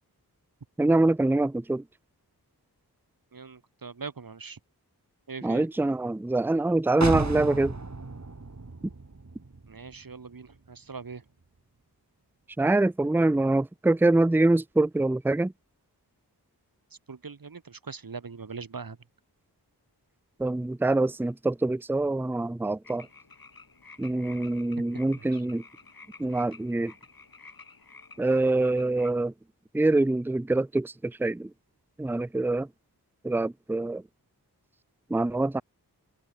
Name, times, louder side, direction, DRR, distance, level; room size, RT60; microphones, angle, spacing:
voice 1, 0.8-1.8 5.4-7.7 12.6-15.5 20.4-23.1 24.0-25.6 26.2-26.9 28.2-29.3 29.7-31.5 32.0-32.7 33.2-34.0 35.1-35.6, right 2 dB, 5° right, 0.5 m, -25 dB
voice 2, 3.3-4.6 5.3-5.7 9.7-11.2 17.1-19.0 25.2-25.4, right 5 dB, 60° right, 1.8 m, -41 dB
sound 1, 7.0-10.8 11.1-11.2, right 3 dB, 45° right, 3.4 m, -34 dB
sound 2, 22.8-29.1, left 4 dB, 65° left, 4.5 m, -51 dB
open air
cardioid pair, 45°, 38 cm